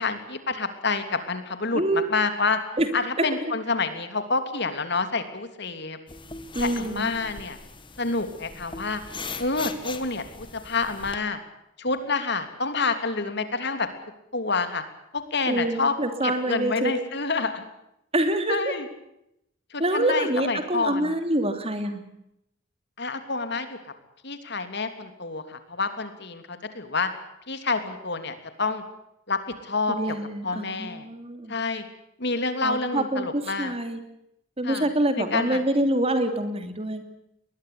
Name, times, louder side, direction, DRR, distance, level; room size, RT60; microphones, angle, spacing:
voice 1, 0.0-2.6 2.9-6.0 6.6-7.6 8.0-9.0 9.4-11.4 11.8-13.9 14.3-14.8 15.1-16.0 16.2-17.6 18.5-18.9 19.7-21.1 23.0-23.8 24.2-27.1 27.5-28.8 29.3-30.2 30.4-31.1 31.5-31.8 32.2-33.7 34.6-34.9 35.2-35.6, left 3 dB, 55° left, 9 dB, 3.1 m, -28 dB
voice 2, 1.7-2.0 2.8-2.9 3.2-3.3 6.5-7.1 15.5-16.9 18.1-18.7 19.8-22.0 29.9-31.6 32.6-34.0 34.6-37.0, right 1 dB, 30° right, 8 dB, 3.1 m, -26 dB
sound 1, 6.1-11.1, left 4 dB, 25° left, 2.0 m, -40 dB
22.5 x 20.5 x 8.5 m, 0.80 s
head